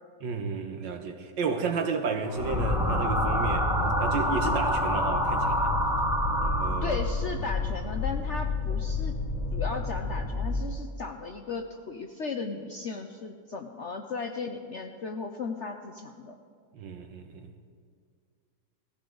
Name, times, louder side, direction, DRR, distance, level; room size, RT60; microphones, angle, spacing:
voice 1, 0.2-3.7 4.0-5.7 6.4-7.0 16.7-17.5, right 5 dB, 85° right, 6 dB, 1.8 m, -32 dB
sound 1, 2.2-7.3, equal, ahead, 1.1 m, -28 dB
sound 2, 2.4-10.6, left 2 dB, 20° left, 1.6 m, -30 dB
voice 2, 6.8-9.1 9.5-16.4, left 4 dB, 60° left, 5 dB, 0.7 m, -36 dB
18.0 x 14.5 x 3.9 m, 2.1 s
omnidirectional pair, 1.9 m